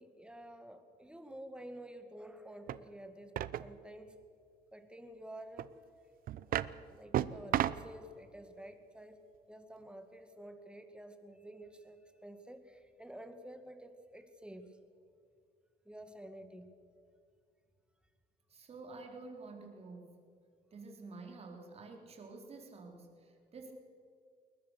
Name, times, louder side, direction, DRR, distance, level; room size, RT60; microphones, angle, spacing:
voice 1, 0.0-4.2 4.7-5.7 6.5-6.6 6.9-9.2 9.5-14.8 15.9-16.7, right 1 dB, 5° right, 8 dB, 2.0 m, -50 dB
sound 1, 2.7-2.8 3.4-3.7 5.6-5.7 6.3-6.7 7.1-7.9, right 12 dB, 60° right, 0.7 m, -33 dB
voice 2, 18.5-20.1 20.7-23.7, right 3 dB, 35° right, 3 dB, 3.9 m, -49 dB
21.0 x 20.0 x 6.7 m, 2.3 s
cardioid pair, 110°, 17 cm